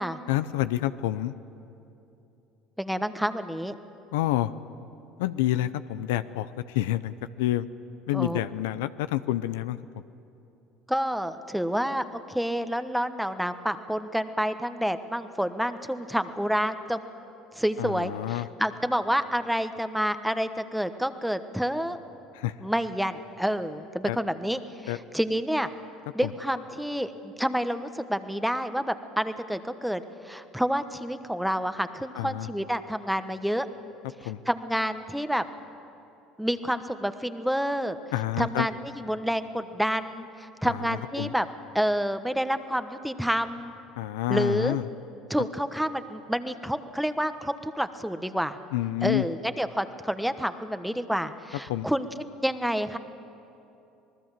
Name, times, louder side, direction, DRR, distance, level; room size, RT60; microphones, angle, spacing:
voice 1, 0.3-1.3 4.1-4.5 5.2-7.7 8.1-9.8 17.8-18.5 22.3-22.5 24.1-24.2 24.9-25.0 26.2-26.3 32.2-32.5 34.2-34.4 38.1-38.7 40.6-41.3 44.0-44.8 48.7-49.2 51.7-51.9, left 14 dB, 85° left, 13 dB, 0.6 m, -28 dB
voice 2, 2.8-3.7 8.1-8.4 10.9-17.0 17.5-22.0 22.6-25.7 26.1-33.7 34.2-35.4 36.4-38.0 38.4-41.5 41.7-43.7 44.3-44.8 45.3-48.6 49.0-52.1 52.4-53.0, equal, ahead, 10 dB, 1.2 m, -28 dB
26.5 x 19.5 x 7.5 m, 2.8 s
hypercardioid pair, 80°, 0 cm